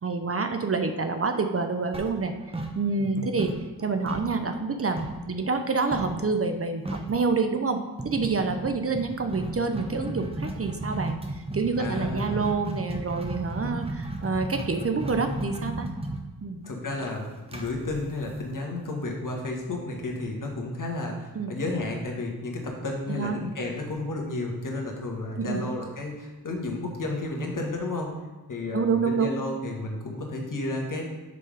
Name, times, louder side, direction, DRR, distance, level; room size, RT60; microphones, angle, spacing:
voice 1, 0.0-2.3 2.7-3.5 3.8-5.0 5.3-15.9 16.4-16.6 21.4-21.5 23.1-23.4 25.4-25.6 28.7-29.3, right 4 dB, 35° right, 6 dB, 0.7 m, -27 dB
sound 1, 1.9-3.1 3.4-5.3 5.9-6.2 6.5-6.6 6.8-7.2 8.0-18.8, right 1 dB, 15° right, 1.0 m, -34 dB
voice 2, 11.8-12.4 16.6-28.1 28.5-31.0, left 2 dB, 50° left, 0 dB, 1.5 m, -32 dB
6.7 x 3.6 x 5.0 m, 1.2 s
cardioid pair, 60°, 39 cm